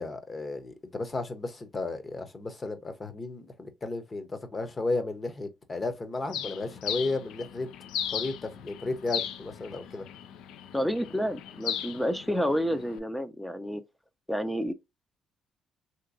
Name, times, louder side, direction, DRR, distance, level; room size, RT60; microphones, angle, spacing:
voice 1, 0.0-7.7 8.1-10.0, left 3 dB, 30° left, 0.9 m, -34 dB
Bird, 6.3-13.0, left 9 dB, 85° left, 0.4 m, -37 dB
voice 2, 10.7-13.8 14.3-14.7, equal, 5° left, 0.5 m, -29 dB
3.3 x 2.9 x 2.5 m
cardioid pair, 90°, 0 cm